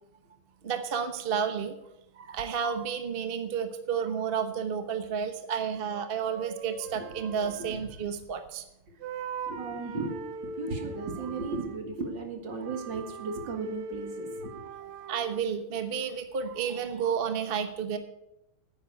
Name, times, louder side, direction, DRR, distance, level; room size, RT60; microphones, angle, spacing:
voice 1, 0.6-1.8 2.2-8.6 15.1-18.0, right 7 dB, 40° right, 8 dB, 0.8 m, -31 dB
sound 1, 2.3-2.4 5.9-8.7 9.0-11.9 12.5-15.5, right 5 dB, 80° right, 1.7 m, -41 dB
voice 2, 6.9-7.3 7.6-7.8 8.9-9.0 9.5-10.2 10.4-14.7, right 3 dB, 55° right, 4 dB, 2.5 m, -36 dB
10.0 x 9.0 x 8.3 m, 0.84 s
omnidirectional pair, 2.4 m